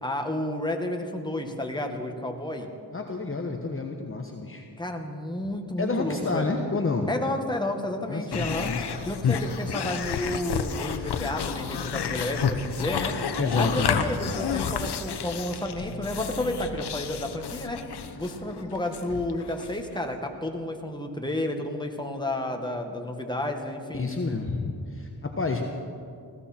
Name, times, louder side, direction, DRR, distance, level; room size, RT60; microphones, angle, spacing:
voice 1, 0.0-2.7 4.8-6.5 7.1-8.7 9.1-13.1 13.6-17.8 18.2-24.1, left 1 dB, 10° left, 3 dB, 1.8 m, -31 dB
voice 2, 2.9-4.7 5.8-7.1 8.1-8.8 13.4-14.0 23.9-25.7, left 3 dB, 35° left, 3 dB, 1.2 m, -29 dB
sound 1, 8.3-20.0, left 6 dB, 80° left, 1.0 m, -31 dB
19.5 x 16.0 x 4.4 m, 2.4 s
cardioid pair, 70°, 39 cm